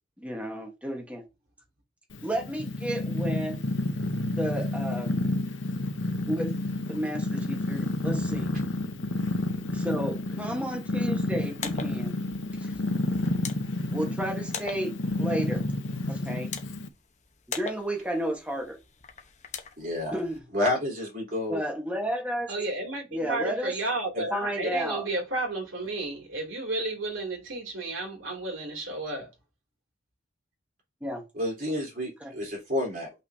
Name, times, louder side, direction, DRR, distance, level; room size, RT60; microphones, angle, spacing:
voice 1, 0.2-1.2 2.2-3.6 4.4-5.2 6.3-6.6 6.9-8.5 9.7-12.1 12.6-12.7 13.9-14.9 15.2-15.6 16.1-16.5 17.5-18.8 20.1-20.4 21.5-22.5 23.1-23.7 24.3-25.0 31.0-31.2 32.2-32.3, equal, 5° right, 1.2 m, -32 dB
Purr, 2.1-16.9, left 1 dB, 70° left, 0.8 m, -30 dB
sound 1, 11.4-20.4, left 6 dB, 35° left, 0.9 m, -43 dB
voice 2, 19.8-20.2 20.5-21.6 24.1-24.3 31.4-33.2, left 1 dB, 45° right, 3.4 m, -30 dB
voice 3, 22.5-29.3, right 2 dB, 85° right, 2.6 m, -32 dB
6.7 x 5.7 x 2.7 m
head